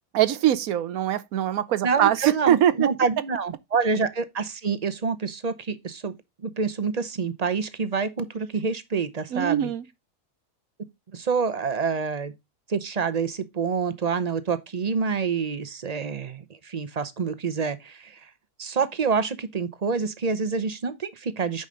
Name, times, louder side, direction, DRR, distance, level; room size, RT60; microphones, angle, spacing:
voice 1, 0.1-2.9 9.3-9.8, right 11 dB, 85° right, 1.2 m, -22 dB
voice 2, 1.8-6.2 6.4-9.7 11.1-12.3 12.7-18.2 18.6-21.7, right 5 dB, 35° right, 0.8 m, -27 dB
9.1 x 5.2 x 3.8 m
omnidirectional pair, 1.5 m